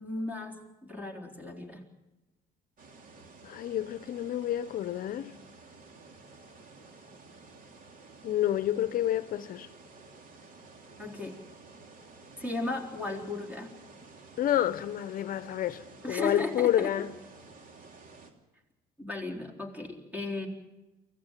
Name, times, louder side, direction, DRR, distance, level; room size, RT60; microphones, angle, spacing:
voice 1, 0.0-1.8 11.0-11.4 12.4-13.7 16.0-16.9 19.0-20.5, left 2 dB, 10° right, 3.8 m, -35 dB
sound 1, 2.8-18.3, right 3 dB, 55° right, 2.9 m, -52 dB
voice 2, 3.4-5.3 8.2-9.7 14.4-17.1, left 12 dB, 55° left, 0.8 m, -29 dB
24.5 x 16.0 x 7.4 m
cardioid pair, 110°, 17 cm